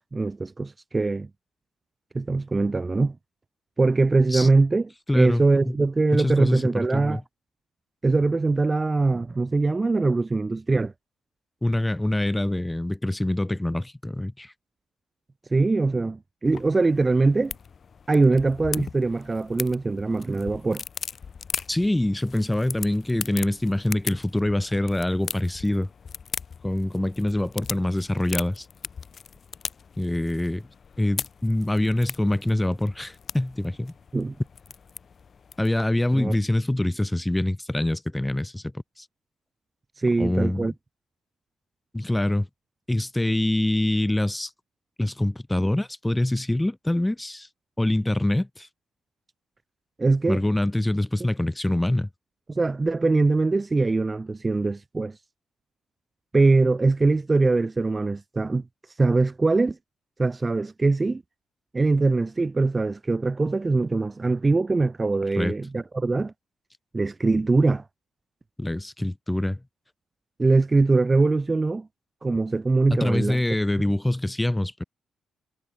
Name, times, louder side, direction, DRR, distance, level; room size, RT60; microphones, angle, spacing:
voice 1, 0.1-1.3 2.1-3.1 3.8-7.2 8.0-10.9 15.5-17.5 18.1-20.8 34.1-34.3 36.1-36.3 40.0-40.7 50.0-50.4 52.5-55.2 56.3-58.6 59.0-59.8 60.2-61.2 61.7-66.3 66.9-67.8 70.4-71.9 72.2-73.4, right 3 dB, 25° right, 2.3 m, -22 dB
voice 2, 5.1-5.7 6.1-7.2 11.6-14.5 21.7-25.9 26.6-28.7 30.0-30.7 31.0-33.9 35.6-39.0 40.2-40.7 41.9-42.5 42.9-44.5 45.0-47.5 47.8-48.7 50.3-52.1 65.4-65.6 68.6-69.6 72.9-74.8, left 1 dB, 10° left, 4.6 m, -25 dB
sound 1, 16.4-35.9, left 6 dB, 45° left, 5.7 m, -39 dB
cardioid pair, 90°, 0 cm